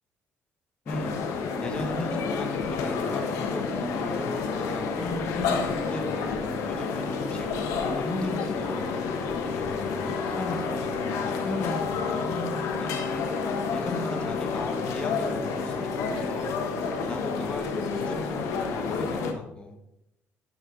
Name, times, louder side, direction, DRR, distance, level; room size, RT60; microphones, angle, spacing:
voice 1, 0.8-1.2 1.6-6.1 6.7-7.5 7.8-8.9 9.3-12.9 13.7-16.5 17.1-19.8, left 2 dB, 20° left, 4 dB, 1.4 m, -36 dB
sound 1, 0.9-19.3, left 5 dB, 90° left, 1.2 m, -30 dB
sound 2, 7.2-17.8, left 4 dB, 50° left, 1.2 m, -38 dB
9.8 x 7.1 x 3.8 m, 0.88 s
cardioid pair, 125°, 5 cm